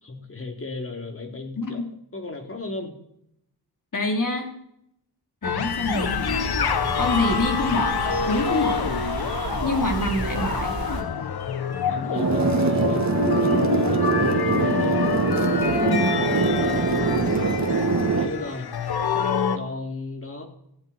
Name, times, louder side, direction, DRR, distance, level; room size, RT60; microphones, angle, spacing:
voice 1, 0.0-1.8 2.1-2.9 11.9-13.0 13.4-15.1 16.4-17.3 18.2-18.7 19.5-20.4, left 3 dB, 35° left, 3 dB, 3.1 m, -35 dB
voice 2, 1.6-2.0 3.9-4.6 5.4-6.3 6.9-8.9 9.6-10.7 15.8-16.3, left 2 dB, 50° left, 3 dB, 3.5 m, -26 dB
sound 1, 5.4-19.6, left 7 dB, 70° left, 1.2 m, -27 dB
sound 2, 5.6-11.0, right 4 dB, 60° right, 3.5 m, -32 dB
sound 3, 12.1-18.3, right 4 dB, 45° right, 1.9 m, -22 dB
18.5 x 15.0 x 4.4 m, 0.75 s
wide cardioid pair, 105°, 40 cm